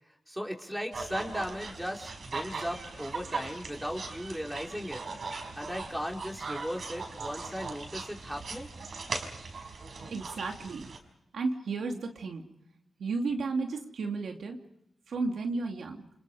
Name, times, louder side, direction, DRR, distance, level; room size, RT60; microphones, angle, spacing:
voice 1, 0.3-5.0 5.5-8.7, equal, 5° right, 1 dB, 4.8 m, -37 dB
sound 1, 0.9-11.0, right 4 dB, 65° right, 5.2 m, -39 dB
voice 2, 10.1-10.9 11.3-12.4 13.0-14.6 15.1-16.0, right 3 dB, 90° right, 3 dB, 2.6 m, -33 dB
29.5 x 28.0 x 5.0 m, 0.80 s
wide cardioid pair, 85°, 0 cm